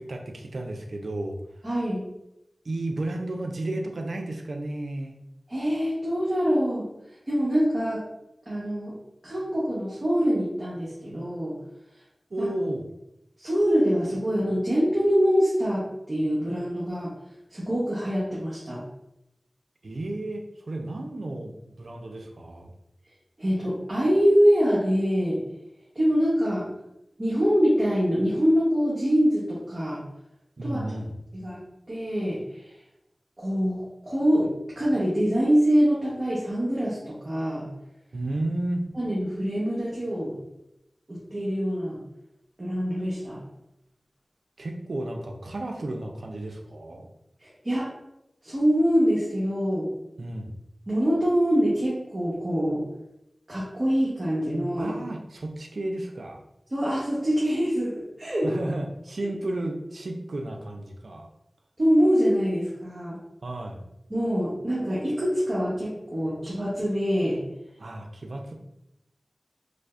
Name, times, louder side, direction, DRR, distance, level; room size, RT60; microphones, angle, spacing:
voice 1, 0.0-1.4 2.6-5.1 12.3-12.9 19.8-22.7 30.6-31.1 38.1-38.9 44.6-47.1 50.2-50.6 54.8-56.4 58.4-61.3 63.4-63.8 67.8-68.5, right 1 dB, 90° right, 3 dB, 0.5 m, -32 dB
voice 2, 1.6-2.1 5.5-6.9 7.3-8.1 8.5-9.0 9.2-11.5 12.4-12.5 13.4-17.1 17.5-18.8 23.4-25.4 25.9-26.7 27.2-30.0 30.6-30.9 31.3-31.6 31.9-32.7 33.4-37.7 38.9-40.4 41.1-42.0 42.6-43.4 47.4-47.9 48.4-49.9 50.9-52.8 53.5-54.9 56.7-58.5 59.2-59.3 61.8-63.2 64.1-67.4, equal, 45° right, -8 dB, 1.1 m, -24 dB
4.9 x 2.0 x 2.5 m, 0.85 s
wide cardioid pair, 50°, 0 cm